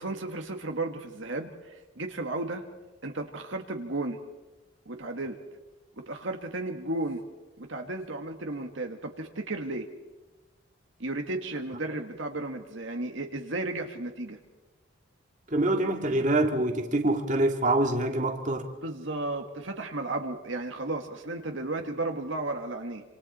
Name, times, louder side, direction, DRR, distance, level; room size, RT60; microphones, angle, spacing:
voice 1, 0.0-2.6 3.0-4.2 4.9-5.4 6.1-7.2 7.6-9.9 11.0-14.4 18.8-23.0, right 2 dB, 65° right, 4 dB, 1.7 m, -34 dB
voice 2, 15.5-18.7, right 2 dB, 35° right, 4 dB, 2.1 m, -25 dB
27.5 x 27.0 x 4.3 m, 1.1 s
head